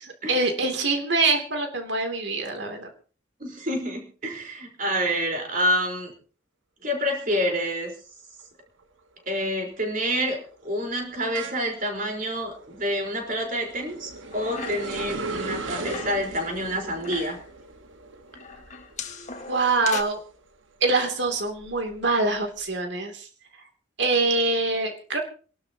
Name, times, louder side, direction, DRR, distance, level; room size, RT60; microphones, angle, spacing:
voice 1, 0.3-2.9 19.5-20.2 20.8-23.3 24.0-25.2, right 3 dB, 65° right, 4 dB, 2.9 m, -24 dB
voice 2, 3.4-6.1 6.8-7.9 9.3-17.4, equal, 45° right, 2 dB, 4.4 m, -28 dB
sound 1, 8.4-8.8 9.2-20.5 20.9-22.6, right 3 dB, 80° right, 1.5 m, -39 dB
sound 2, 14.2-15.1 15.4-16.3 16.8-17.5 18.3-20.0, left 5 dB, 40° left, 1.6 m, -38 dB
27.5 x 12.0 x 2.9 m, 0.40 s
head